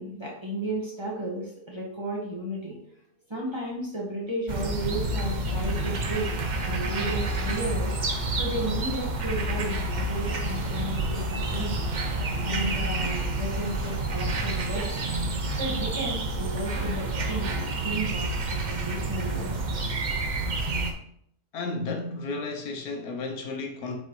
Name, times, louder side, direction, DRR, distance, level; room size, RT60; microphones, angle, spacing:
voice 1, 0.0-2.8 3.3-6.3 6.6-7.9 8.4-11.9 12.4-15.1 15.5-19.7, right 1 dB, 20° right, 1.6 m, -33 dB
sound 1, 4.5-20.9, right 2 dB, 50° right, 0.5 m, -29 dB
voice 2, 21.5-24.0, left 3 dB, 75° left, 1.3 m, -33 dB
7.3 x 4.2 x 3.1 m
omnidirectional pair, 1.6 m